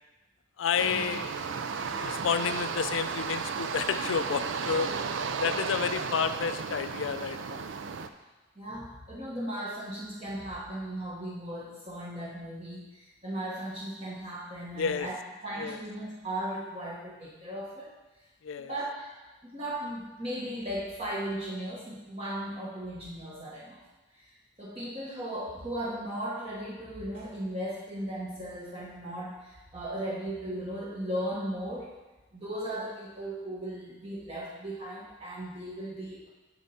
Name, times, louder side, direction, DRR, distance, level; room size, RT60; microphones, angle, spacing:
voice 1, 0.6-1.3 1.8-4.9 5.4-7.6 14.8-15.1 15.6-15.8 18.4-18.7, left 6 dB, 80° left, 11 dB, 0.4 m, -30 dB
sound 1, 0.8-8.1, right 5 dB, 75° right, 0.4 m, -34 dB
voice 2, 8.6-17.9 18.7-19.1 19.5-23.8 24.1-31.9 32.3-36.3, right 1 dB, 30° right, -6 dB, 1.0 m, -37 dB
7.0 x 6.6 x 4.2 m, 1.1 s
head